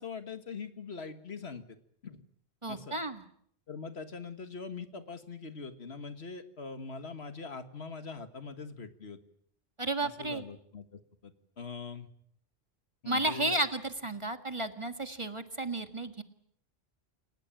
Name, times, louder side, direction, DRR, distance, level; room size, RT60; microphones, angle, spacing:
voice 1, 0.0-1.6 2.0-2.2 2.7-3.0 3.7-9.2 10.0-12.1 13.0-13.6, left 4 dB, 75° left, 10 dB, 1.9 m, -42 dB
voice 2, 2.6-3.2 9.8-10.4 13.1-16.2, right 2 dB, 30° right, 9 dB, 1.8 m, -33 dB
29.0 x 17.5 x 9.0 m, 0.68 s
omnidirectional pair, 1.1 m